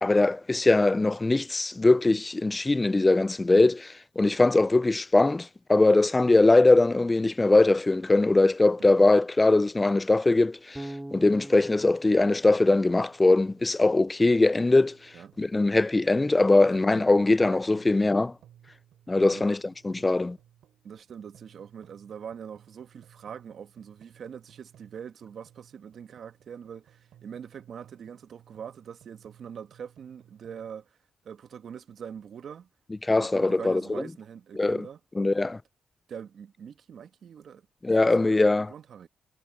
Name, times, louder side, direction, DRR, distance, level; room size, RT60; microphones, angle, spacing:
voice 1, 0.0-15.0 15.4-18.3 19.1-20.4 33.0-33.8 34.6-34.9 35.2-35.6 37.8-38.7, left 2 dB, 20° left, 0.4 m, -21 dB
Bass guitar, 10.7-13.8, right 1 dB, 10° right, 3.2 m, -43 dB
sound 1, 13.1-30.7, right 11 dB, 85° right, 5.2 m, -59 dB
voice 2, 16.6-17.1 17.5-17.6 19.2-19.5 20.8-31.0 31.2-32.7 33.2-35.0 36.1-37.7 38.0-39.1, right 7 dB, 65° right, 1.3 m, -43 dB
cardioid pair, 70°, 0 cm